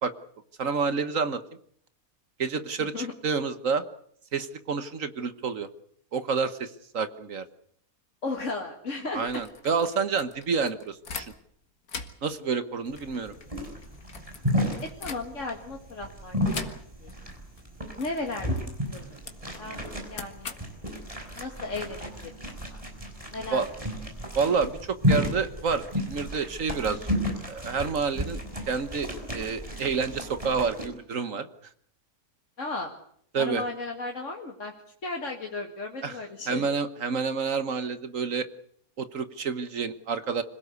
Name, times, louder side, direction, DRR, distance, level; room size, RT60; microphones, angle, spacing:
voice 1, 0.6-1.4 2.4-3.8 4.3-5.7 6.1-7.4 9.1-11.3 12.2-13.3 23.5-23.7 24.3-27.1 27.5-28.4 28.7-31.5 33.3-33.6 36.0-36.2 36.5-38.5 39.0-40.4, right 5 dB, 60° right, 12 dB, 1.6 m, -29 dB
voice 2, 2.8-3.1 8.2-9.4 14.8-16.7 17.0-17.1 18.0-18.5 18.9-19.2 19.6-20.6 21.4-22.8 23.3-23.6 32.6-32.9 33.4-34.7 35.0-36.7, left 3 dB, 55° left, 2 dB, 2.4 m, -35 dB
sound 1, 9.1-11.6 11.8-15.7 16.5-17.2 17.4-17.6 18.0-22.6, left 5 dB, 85° left, 2.4 m, -43 dB
sound 2, 12.9-30.9, equal, 20° right, 5.5 m, -32 dB
26.0 x 17.0 x 8.1 m, 0.66 s
omnidirectional pair, 1.5 m